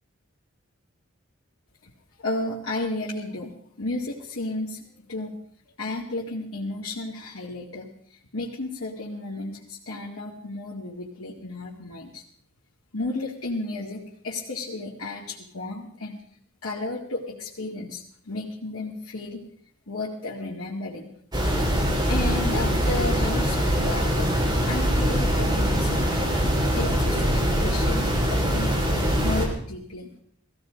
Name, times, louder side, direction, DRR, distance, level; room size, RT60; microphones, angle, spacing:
voice 1, 2.2-5.4 5.8-12.2 12.9-16.2 16.6-19.4 19.9-21.2 22.1-26.3 26.7-28.8 29.2-30.1, left 2 dB, 80° left, -4 dB, 2.1 m, -33 dB
sound 1, 21.3-29.5, equal, 20° right, 3.2 m, -23 dB
16.5 x 16.0 x 5.1 m, 0.66 s
head